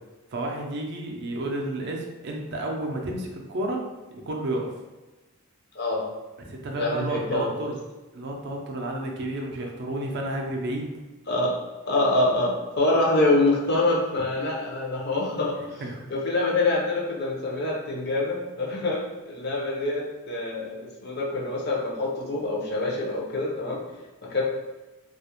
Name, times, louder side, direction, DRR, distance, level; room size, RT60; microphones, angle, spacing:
voice 1, 0.3-3.8 4.1-4.7 6.4-7.7 8.1-10.9 15.8-16.1, right 1 dB, 50° right, 1 dB, 0.4 m, -31 dB
voice 2, 5.7-6.1 6.8-7.7 11.3-11.5 11.9-15.8 16.1-23.8 24.3-24.4, left 2 dB, 45° left, -2 dB, 0.5 m, -25 dB
2.3 x 2.0 x 2.8 m, 1.1 s
head